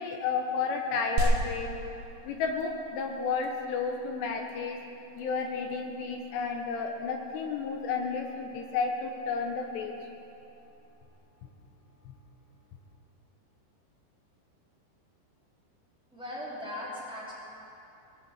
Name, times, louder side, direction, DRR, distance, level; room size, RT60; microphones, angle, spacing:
voice 1, 0.0-1.8 2.2-4.8 5.2-9.9 12.1-12.2, left 5 dB, 80° left, 3 dB, 3.0 m, -32 dB
sound 1, 1.2-11.1, right 2 dB, 70° right, 1.6 m, -37 dB
voice 2, 16.1-17.3, left 1 dB, ahead, -8 dB, 2.6 m, -38 dB
19.0 x 7.9 x 7.3 m, 2.9 s
omnidirectional pair, 5.0 m